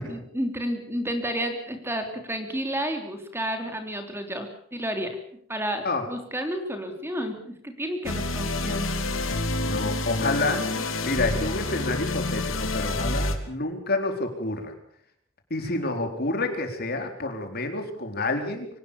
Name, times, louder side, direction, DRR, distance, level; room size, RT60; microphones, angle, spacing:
voice 1, 0.1-5.1 5.5-8.9, equal, 10° right, 6 dB, 3.1 m, -31 dB
sound 1, 8.0-13.3, left 2 dB, 80° left, 2.9 m, -28 dB
voice 2, 9.6-10.6 11.0-14.7 15.5-18.7, left 2 dB, 50° left, 5 dB, 4.1 m, -28 dB
25.0 x 18.5 x 7.1 m, 0.66 s
head